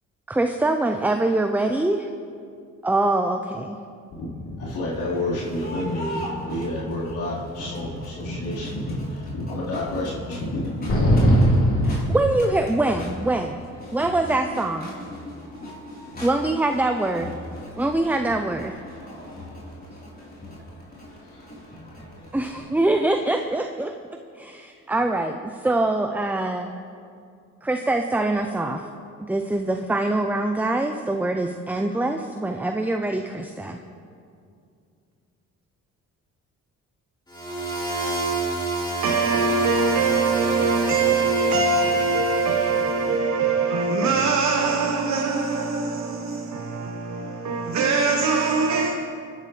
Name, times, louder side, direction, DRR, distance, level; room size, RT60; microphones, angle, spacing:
voice 1, 0.3-2.1 2.8-3.8 11.8-13.6 13.9-14.9 16.2-17.3 17.8-18.8 22.3-24.0 24.4-26.7 27.6-28.9 29.2-33.8, right 2 dB, 5° right, 0.6 m, -24 dB
voice 2, 4.1-11.1 21.1-21.4, left 1 dB, 85° left, 4.3 m, -29 dB
Crowd, 4.9-22.6, left 1 dB, 30° left, 3.9 m, -40 dB
sound 1, 10.9-12.8, equal, 45° left, 2.8 m, -19 dB
sound 2, 37.3-43.1, right 3 dB, 15° left, 3.0 m, -28 dB
voice 3, 39.0-48.9, right 4 dB, 65° right, 1.2 m, -22 dB
24.5 x 11.0 x 3.3 m
cardioid pair, 90°, 30 cm